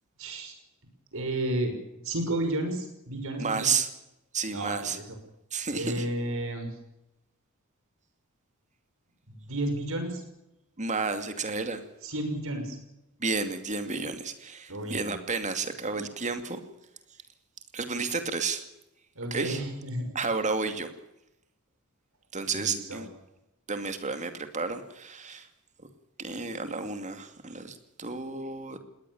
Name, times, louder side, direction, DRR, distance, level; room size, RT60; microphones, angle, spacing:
voice 1, 0.2-0.5 1.1-1.8 2.0-3.7 4.5-5.2 5.7-6.8 9.3-10.2 12.0-12.8 14.7-15.2 19.1-20.1 22.5-23.0, right 1 dB, 70° right, 6 dB, 6.0 m, -32 dB
voice 2, 3.4-3.9 4.3-5.0 5.5-6.1 10.8-11.8 13.2-16.6 17.7-18.6 19.3-19.6 20.1-20.9 22.3-23.1 23.7-25.5 26.2-28.8, right 4 dB, 35° right, 8 dB, 2.4 m, -31 dB
20.5 x 18.5 x 7.2 m, 0.89 s
head